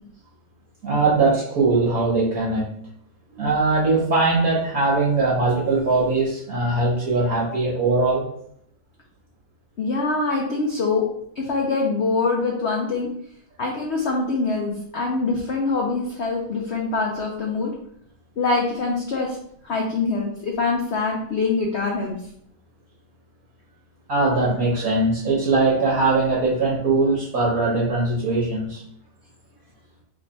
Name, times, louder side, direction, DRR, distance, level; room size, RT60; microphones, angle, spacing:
voice 1, 0.8-2.7 3.3-8.3 24.1-28.8, right 3 dB, 55° right, -4 dB, 1.2 m, -21 dB
voice 2, 9.8-11.0 11.4-13.1 13.6-17.7 18.4-19.4 19.6-22.1, left 3 dB, 85° left, -1 dB, 0.6 m, -24 dB
3.4 x 3.2 x 4.0 m, 0.68 s
omnidirectional pair, 2.1 m